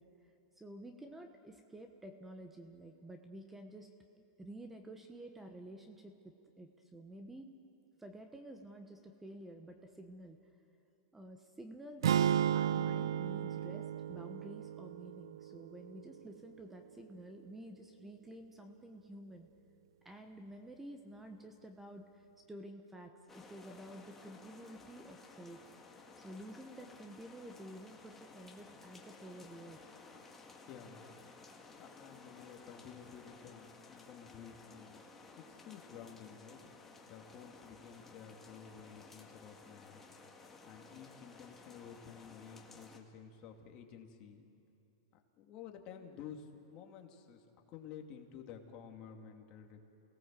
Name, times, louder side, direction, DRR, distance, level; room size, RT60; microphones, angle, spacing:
voice 1, 0.0-3.9 4.1-7.5 8.0-10.4 11.1-12.2 12.5-19.5 20.0-25.6 26.2-29.9, right 1 dB, 10° right, 5 dB, 1.2 m, -51 dB
sound 1, 12.0-16.2, right 9 dB, 85° right, 0.5 m, -34 dB
sound 2, 23.3-43.0, left 3 dB, 10° left, 1.9 m, -56 dB
voice 2, 30.6-31.1 31.8-35.0 35.4-40.1 40.6-44.5 45.4-49.8, left 7 dB, 35° left, 3 dB, 2.4 m, -52 dB
29.0 x 17.5 x 7.6 m, 2.8 s
supercardioid pair, 140°, 2 cm